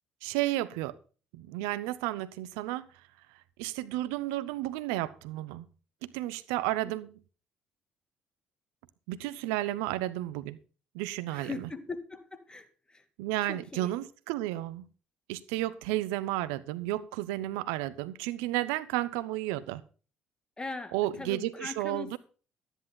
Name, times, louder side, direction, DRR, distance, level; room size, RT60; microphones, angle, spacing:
voice 1, 0.2-1.0 1.3-2.9 3.6-5.7 6.0-7.1 9.1-10.6 10.9-11.5 13.2-14.9 15.3-19.8 20.9-22.2, right 16 dB, 75° right, 0.7 m, -32 dB
voice 2, 11.3-13.0 13.4-13.9 20.6-22.2, left 3 dB, 20° left, 2.4 m, -40 dB
13.0 x 10.0 x 4.0 m
hypercardioid pair, 55°, 4 cm